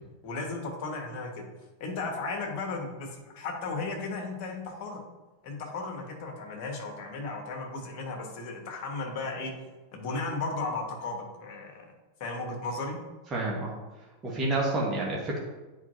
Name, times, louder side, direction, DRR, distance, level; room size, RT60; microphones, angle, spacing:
voice 1, 0.2-1.5 1.8-5.0 5.4-9.5 9.9-11.8 12.2-13.0, left 3 dB, 40° left, 1 dB, 1.6 m, -35 dB
voice 2, 13.3-13.7 14.2-15.4, right 2 dB, 25° right, -3 dB, 1.5 m, -29 dB
9.3 x 4.6 x 2.8 m, 1.1 s
figure-of-eight pair, 90°, 0 cm